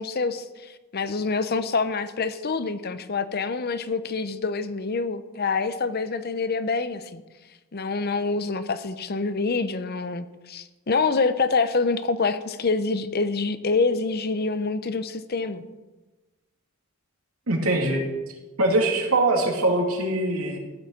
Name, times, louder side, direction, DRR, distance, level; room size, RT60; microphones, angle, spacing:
voice 1, 0.0-7.2 7.7-15.6, left 4 dB, 45° left, 12 dB, 0.7 m, -26 dB
voice 2, 17.5-18.0 18.6-20.6, right 2 dB, 85° right, 2 dB, 2.3 m, -22 dB
14.5 x 6.3 x 7.1 m, 1.2 s
head